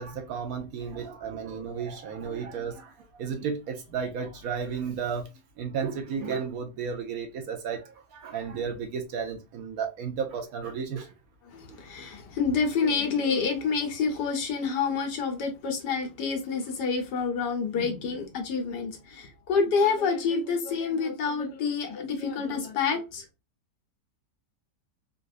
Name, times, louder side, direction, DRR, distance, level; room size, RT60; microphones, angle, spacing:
voice 1, 0.0-5.3 5.6-11.1, right 6 dB, 65° right, 1.0 m, -33 dB
voice 2, 11.5-23.3, left 5 dB, 75° left, 1.6 m, -28 dB
4.0 x 2.5 x 2.4 m
omnidirectional pair, 1.8 m